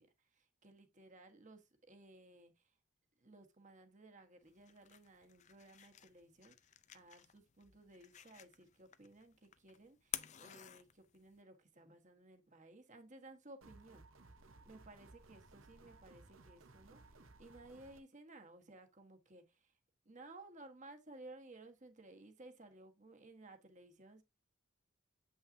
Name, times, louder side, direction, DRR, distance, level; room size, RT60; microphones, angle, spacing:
voice 1, 0.0-2.7 3.2-6.5 6.9-14.0 14.6-19.8 20.0-24.2, right 2 dB, 35° right, 1.4 m, -58 dB
sound 1, 4.4-11.4, left 11 dB, 35° left, 0.4 m, -52 dB
sound 2, 13.6-18.0, right 2 dB, 75° right, 1.0 m, -61 dB
8.3 x 5.6 x 2.7 m
head